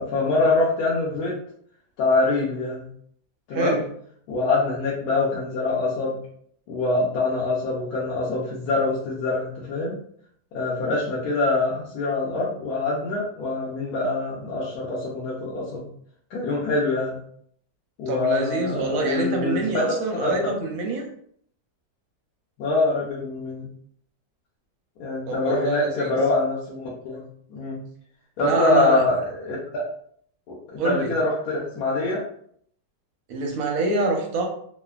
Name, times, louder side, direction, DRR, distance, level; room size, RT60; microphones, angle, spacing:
voice 1, 0.0-1.3 2.0-2.9 3.5-3.8 4.3-6.2 6.7-10.0 10.5-15.9 16.3-17.2 18.0-19.8 20.2-20.3 22.6-23.7 25.0-27.2 27.5-27.8 28.4-29.8 30.5-32.2, left 2 dB, 70° left, -5 dB, 1.0 m, -24 dB
voice 2, 3.5-3.9 18.1-21.0 25.3-26.1 28.4-29.0 30.8-31.1 33.3-34.4, right 3 dB, 70° right, 1 dB, 0.9 m, -25 dB
3.2 x 2.1 x 2.3 m, 0.63 s
omnidirectional pair, 1.9 m